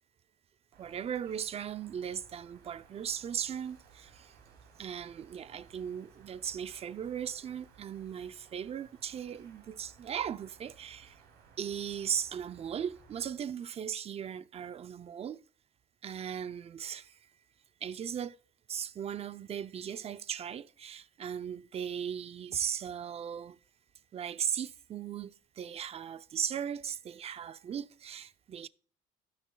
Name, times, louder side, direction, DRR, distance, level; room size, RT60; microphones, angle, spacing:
sound 1, 0.7-13.5, right 5 dB, 85° right, 2.8 m, -60 dB
voice 1, 0.8-4.3 4.8-11.2 11.6-15.4 16.0-17.1 17.8-18.4 18.7-23.6 24.1-28.7, right 8 dB, 35° right, 0.5 m, -37 dB
17.0 x 6.2 x 2.3 m
cardioid pair, 110°, 17 cm